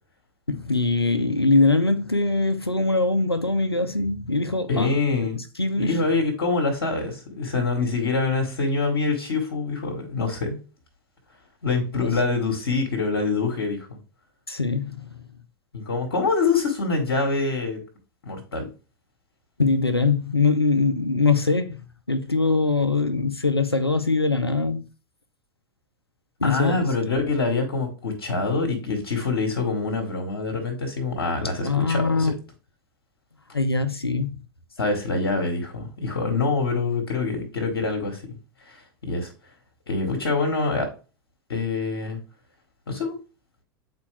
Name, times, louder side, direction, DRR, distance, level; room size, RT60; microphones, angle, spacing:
voice 1, 0.5-5.3 5.6-6.1 11.9-12.1 14.5-15.2 19.6-24.8 26.4-26.9 31.6-32.3 33.5-34.4, left 3 dB, 90° left, 0.7 m, -22 dB
voice 2, 4.7-5.4 5.7-10.6 11.6-14.0 15.7-17.8 18.2-18.7 26.4-32.3 34.8-38.4 38.6-39.3 39.9-40.9 41.5-42.2 42.9-43.2, left 3 dB, 70° left, 1.6 m, -25 dB
8.3 x 4.2 x 3.3 m
figure-of-eight pair, 85°, 13 cm